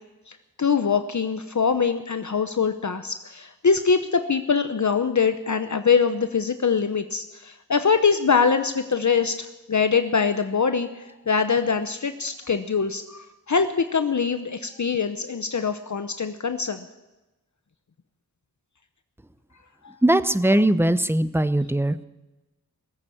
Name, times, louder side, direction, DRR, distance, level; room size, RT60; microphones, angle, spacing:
voice 1, 0.3-16.9 20.6-20.7, left 5 dB, 55° left, 9 dB, 0.8 m, -23 dB
voice 2, 20.0-22.0, right 1 dB, 5° right, 13 dB, 0.8 m, -20 dB
19.5 x 8.3 x 8.5 m, 1.0 s
wide cardioid pair, 50°, 35 cm